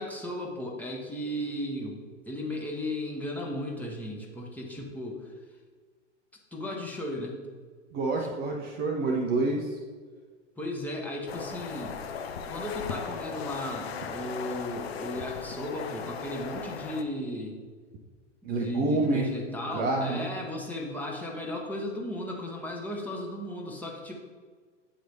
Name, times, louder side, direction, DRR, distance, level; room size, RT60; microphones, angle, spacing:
voice 1, 0.0-2.0 2.2-5.3 6.5-7.4 8.2-8.3 10.6-11.9 12.5-17.5 18.5-24.1, left 1 dB, 5° left, -2 dB, 0.9 m, -35 dB
voice 2, 7.9-9.7 18.4-19.3 19.7-20.3, right 2 dB, 25° right, 1 dB, 0.6 m, -27 dB
sound 1, 11.3-17.0, left 6 dB, 55° left, 0.7 m, -37 dB
8.4 x 3.1 x 4.0 m, 1.5 s
figure-of-eight pair, 105°, 36 cm